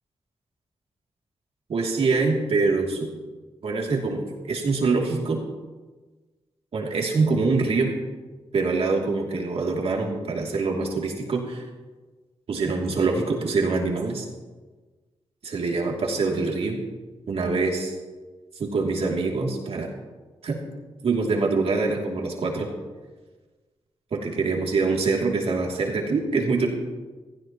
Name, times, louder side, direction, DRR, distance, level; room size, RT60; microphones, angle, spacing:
voice 1, 1.7-3.1 3.6-5.4 6.7-7.9 8.5-11.6 12.5-14.3 15.4-16.8 17.3-17.9 18.6-19.9 20.4-20.6 21.0-22.7 24.1-26.7, right 3 dB, 70° right, 0 dB, 2.7 m, -24 dB
16.5 x 15.5 x 3.0 m, 1.3 s
cardioid pair, 60°, 10 cm